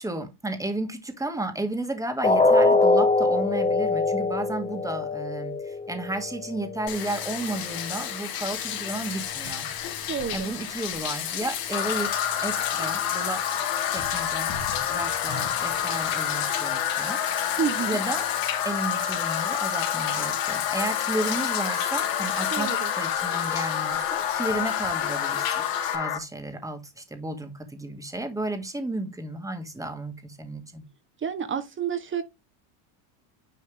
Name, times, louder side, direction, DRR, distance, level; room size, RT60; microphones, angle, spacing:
voice 1, 0.0-9.7 10.0-12.1 12.4-13.4 13.9-14.6 14.9-17.6 17.9-18.3 18.6-25.6 25.9-30.9, right 2 dB, 5° right, 2.2 m, -33 dB
sound 1, 2.2-8.2 8.6-8.8 9.3-9.4, left 3 dB, 15° left, 1.0 m, -24 dB
Bathtub (filling or washing), 6.9-26.0, left 10 dB, 50° left, 2.4 m, -33 dB
voice 2, 10.1-10.5 17.6-18.0 22.5-22.9 31.2-32.2, right 7 dB, 25° right, 1.2 m, -29 dB
sound 2, 11.7-26.2, left 9 dB, 70° left, 3.1 m, -28 dB
10.5 x 4.0 x 3.5 m
supercardioid pair, 120°, 46 cm